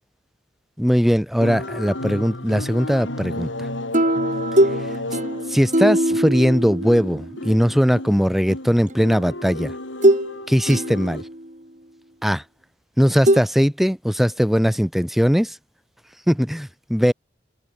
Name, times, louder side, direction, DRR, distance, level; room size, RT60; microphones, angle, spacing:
voice 1, 0.8-3.5 5.5-9.7 10.5-11.2 12.2-12.4 13.0-15.6 16.3-17.1, equal, ahead, 4.4 m, -19 dB
sound 1, 1.4-11.2, left 1 dB, 85° left, 5.7 m, -33 dB
sound 2, 3.9-7.5 8.9-9.0 10.0-10.3 10.7-11.5 13.3-13.4, right 1 dB, 40° right, 3.8 m, -21 dB
head